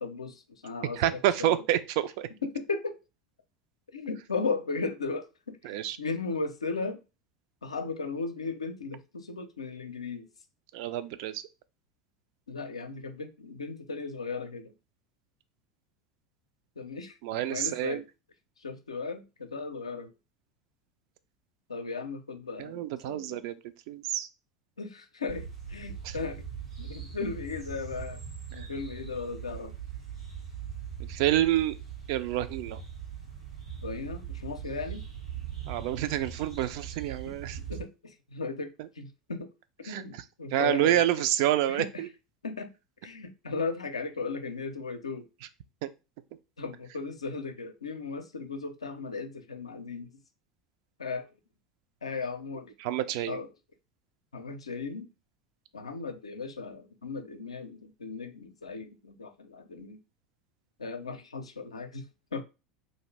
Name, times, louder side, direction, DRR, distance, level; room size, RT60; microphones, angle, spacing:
voice 1, 0.0-1.6 2.4-3.0 3.9-7.0 7.6-10.3 12.5-14.7 16.8-17.2 17.5-18.0 18.6-20.1 21.7-23.4 24.8-26.5 26.8-28.2 28.5-29.7 33.8-35.0 37.7-39.5 39.8-41.0 41.7-42.1 42.4-42.7 43.0-45.3 46.6-50.2 51.0-51.3 52.0-52.7 53.3-53.5 54.3-55.1 55.7-60.0 60.8-62.4, left 4 dB, 80° left, 0.5 m, -36 dB
voice 2, 1.0-2.3 5.6-6.0 10.7-11.4 17.2-18.0 22.6-23.6 23.9-24.3 26.0-26.1 31.0-31.8 32.1-32.8 35.7-37.6 39.9-40.1 40.5-42.1 45.8-45.9 52.8-53.4, right 13 dB, 55° right, 0.3 m, -28 dB
sound 1, 25.3-37.8, right 8 dB, 80° right, 1.2 m, -41 dB
2.6 x 2.4 x 3.2 m
figure-of-eight pair, 75°, 3 cm